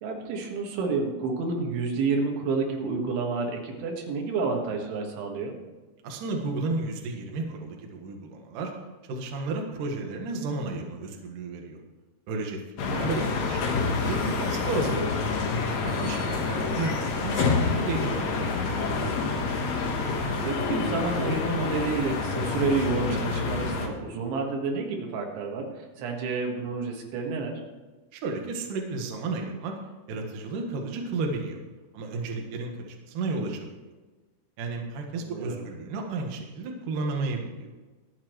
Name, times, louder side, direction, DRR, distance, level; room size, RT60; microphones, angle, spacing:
voice 1, 0.0-5.6 12.9-13.5 20.4-27.5 35.1-35.7, right 4 dB, 90° right, 1 dB, 4.2 m, -30 dB
voice 2, 6.0-8.7 9.1-11.8 12.3-12.6 12.9-15.1 15.8-18.4 28.1-29.7 30.1-31.6 31.9-33.7 34.6-37.7, right 3 dB, 60° right, 1 dB, 2.5 m, -32 dB
sound 1, 12.8-23.9, left 4 dB, 75° left, 1.6 m, -28 dB
24.5 x 8.5 x 3.1 m, 1.3 s
omnidirectional pair, 5.2 m